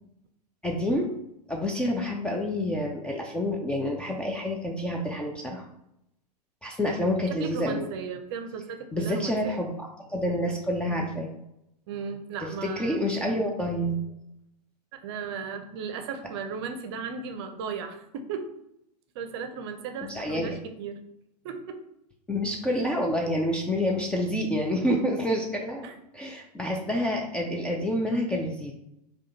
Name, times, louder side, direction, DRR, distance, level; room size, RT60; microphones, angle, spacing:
voice 1, 0.6-1.1 1.5-5.7 6.6-7.9 8.9-11.3 12.6-14.0 20.0-20.6 22.3-28.7, left 1 dB, 5° left, 0 dB, 0.3 m, -28 dB
voice 2, 7.3-9.6 11.9-13.0 14.9-18.5 19.1-21.0 21.4-21.8 25.8-25.9, right 6 dB, 40° right, 7 dB, 0.6 m, -36 dB
4.9 x 2.3 x 3.9 m, 0.81 s
figure-of-eight pair, 105°, 21 cm